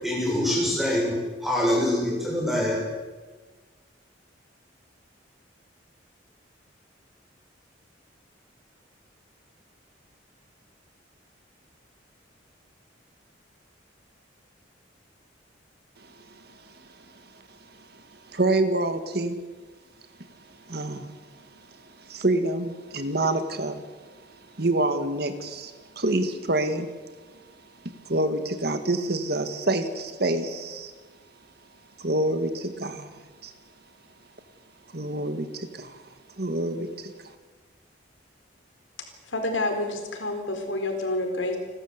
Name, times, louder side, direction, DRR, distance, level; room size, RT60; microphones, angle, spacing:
voice 1, 0.0-1.1 1.4-2.8, left 1 dB, ahead, -2 dB, 7.1 m, -24 dB
voice 2, 16.0-19.4 20.2-30.9 32.0-33.5 34.9-36.1 36.4-37.4, right 2 dB, 55° right, 9 dB, 1.7 m, -28 dB
voice 3, 39.3-41.6, left 2 dB, 80° left, 4 dB, 4.3 m, -28 dB
30.0 x 13.0 x 8.2 m, 1.3 s
head